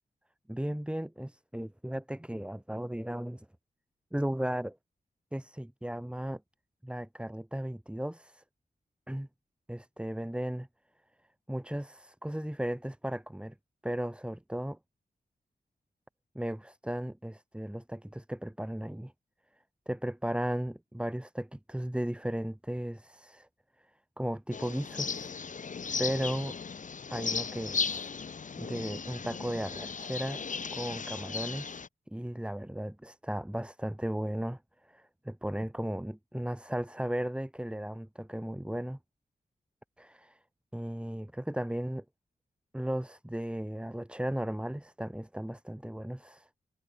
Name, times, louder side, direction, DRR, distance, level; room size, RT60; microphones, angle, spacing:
voice 1, 0.5-3.5 4.1-4.8 5.3-6.4 6.8-8.4 9.1-9.3 9.7-10.7 11.5-13.5 13.8-14.8 16.3-19.1 19.9-23.5 24.2-25.3 26.0-26.6 27.1-28.1 28.6-30.4 30.7-31.7 32.1-39.0 40.0-40.4 40.7-42.0 42.7-46.5, right 1 dB, 5° right, 2.3 m, -35 dB
sound 1, 24.5-31.9, left 5 dB, 50° left, 0.9 m, -36 dB
cardioid pair, 70°, 17 cm